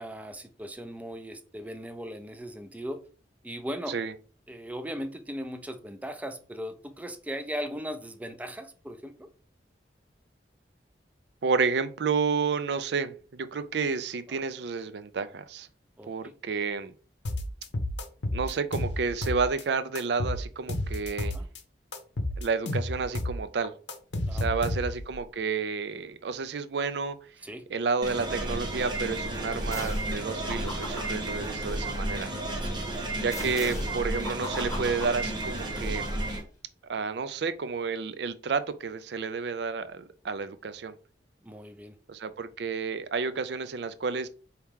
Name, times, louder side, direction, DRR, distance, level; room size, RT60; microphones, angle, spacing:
voice 1, 0.0-3.0 3.4-3.9 4.5-9.3 14.3-14.4 16.0-16.3 21.1-21.5 24.3-24.6 27.4-27.7 31.3-31.6 32.6-32.9 41.4-42.0, equal, 10° right, 0.4 m, -38 dB
voice 2, 11.4-15.7 16.1-16.9 18.3-21.3 22.4-23.7 24.4-27.2 27.7-32.3 33.2-36.1 36.8-41.0 42.1-44.3, right 5 dB, 70° right, 0.4 m, -30 dB
sound 1, 17.2-19.6 19.9-21.6 21.9-25.1, left 1 dB, 80° left, 0.7 m, -31 dB
sound 2, 28.0-36.4, right 1 dB, 25° right, 0.9 m, -32 dB
sound 3, 29.7-30.2 30.5-32.2 33.3-35.9, left 1 dB, 15° left, 1.0 m, -41 dB
4.6 x 2.9 x 3.6 m
head